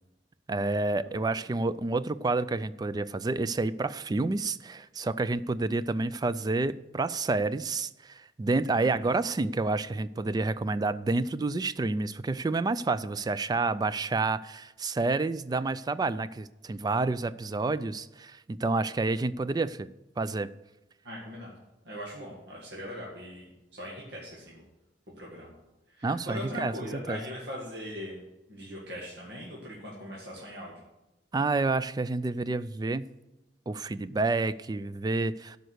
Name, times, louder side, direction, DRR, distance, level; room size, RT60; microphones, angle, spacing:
voice 1, 0.5-20.5 26.0-26.7 27.1-27.2 31.3-33.1 33.7-35.6, right 3 dB, 25° right, 15 dB, 0.3 m, -29 dB
voice 2, 8.8-9.1 21.0-24.7 25.2-25.6 25.9-28.2 28.5-30.8, equal, 70° right, -4 dB, 2.0 m, -41 dB
12.5 x 5.3 x 6.5 m, 0.99 s
head